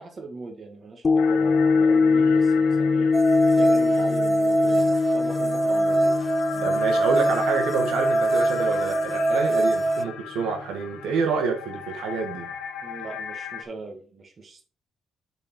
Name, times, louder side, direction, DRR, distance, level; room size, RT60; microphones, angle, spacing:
voice 1, 0.0-3.1 3.5-6.2 6.5-6.8 9.6-9.7 12.8-14.6, right 3 dB, 40° right, 3 dB, 1.8 m, -40 dB
sound 1, 1.0-9.4 9.9-10.0, left 4 dB, 35° left, 0.4 m, -23 dB
sound 2, 1.2-13.6, left 9 dB, 90° left, 1.0 m, -38 dB
sound 3, 3.1-10.0, right 2 dB, 20° right, 0.7 m, -23 dB
voice 2, 6.6-12.5, right 5 dB, 85° right, 3 dB, 1.7 m, -27 dB
7.1 x 4.5 x 4.5 m, 0.38 s
cardioid pair, 90°, 0 cm